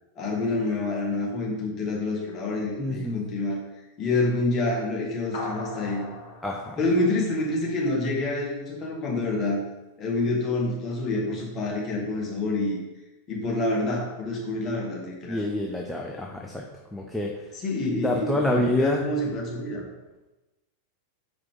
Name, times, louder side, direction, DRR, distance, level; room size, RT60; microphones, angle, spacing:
voice 1, 0.2-3.6 4.0-6.1 6.8-9.6 10.0-12.8 13.3-15.5 17.5-19.9, left 2 dB, 30° left, -3 dB, 1.8 m, -27 dB
voice 2, 2.8-3.2 6.4-6.8 15.3-16.6 16.9-17.3 18.0-19.0, left 1 dB, 5° left, 0 dB, 0.6 m, -27 dB
sound 1, 5.3-8.0, left 1 dB, 55° left, 1.7 m, -39 dB
6.1 x 4.7 x 3.8 m, 1.1 s
figure-of-eight pair, 90°, 0 cm